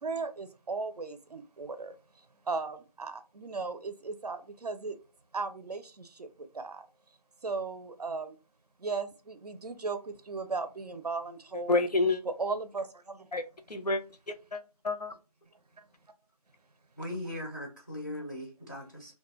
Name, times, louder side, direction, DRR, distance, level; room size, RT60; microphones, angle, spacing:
voice 1, 0.0-2.0 2.5-5.0 5.3-6.9 7.4-8.4 8.8-11.8 12.4-13.3 15.8-15.9, right 4 dB, 80° right, 0.5 m, -36 dB
voice 2, 11.5-12.2 13.3-15.1, left 3 dB, 80° left, 0.5 m, -30 dB
voice 3, 17.0-19.1, left 1 dB, 30° left, 0.4 m, -39 dB
2.2 x 2.1 x 3.0 m
figure-of-eight pair, 170°, 20 cm